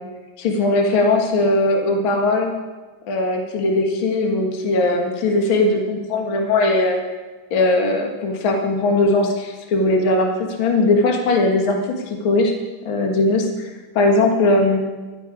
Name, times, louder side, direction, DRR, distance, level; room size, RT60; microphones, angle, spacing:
voice 1, 0.4-2.5 3.1-7.0 7.5-10.3 10.6-11.8 12.2-12.5 12.9-13.7 14.0-14.8, left 2 dB, 45° left, 2 dB, 1.8 m, -19 dB
13.0 x 12.0 x 4.9 m, 1.3 s
omnidirectional pair, 4.2 m